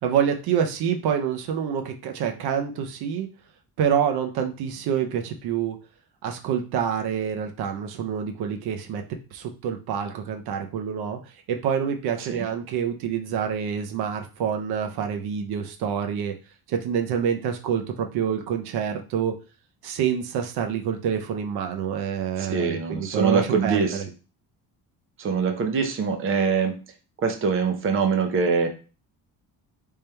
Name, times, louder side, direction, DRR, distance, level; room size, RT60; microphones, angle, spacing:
voice 1, 0.0-3.3 3.8-5.8 6.2-9.0 9.3-11.2 11.5-16.3 16.7-19.3 19.8-24.0, right 8 dB, 85° right, 5 dB, 0.8 m, -27 dB
voice 2, 22.4-24.0 25.2-26.8 27.2-28.7, right 5 dB, 35° right, 4 dB, 0.8 m, -23 dB
3.6 x 3.3 x 4.3 m, 0.33 s
cardioid pair, 180°, 37 cm